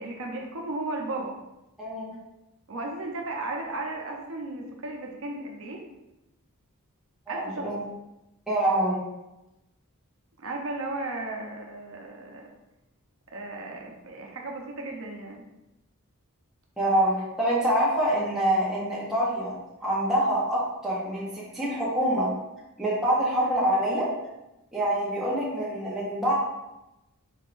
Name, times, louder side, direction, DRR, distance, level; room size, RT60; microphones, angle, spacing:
voice 1, 0.0-1.4 2.7-5.8 7.3-7.7 10.4-12.5 13.3-15.4, right 2 dB, 65° right, 0 dB, 0.7 m, -35 dB
voice 2, 1.8-2.1 7.3-7.8 8.5-9.0 16.8-19.5 19.8-22.3 22.8-24.1 24.7-26.4, right 1 dB, ahead, -8 dB, 0.9 m, -25 dB
4.4 x 3.6 x 2.5 m, 0.94 s
head